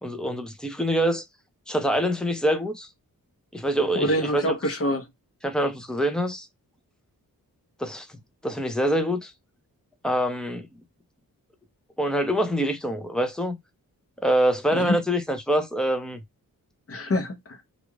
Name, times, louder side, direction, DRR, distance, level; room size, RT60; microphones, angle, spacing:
voice 1, 0.0-1.2 1.7-2.9 3.5-4.6 5.4-6.5 7.8-9.3 10.0-10.7 12.0-13.6 14.2-16.2, equal, ahead, 0.6 m, -25 dB
voice 2, 3.9-5.1 14.7-15.0 16.9-17.6, equal, 40° left, 0.9 m, -25 dB
2.5 x 2.3 x 3.0 m
wide cardioid pair, 110°, 35 cm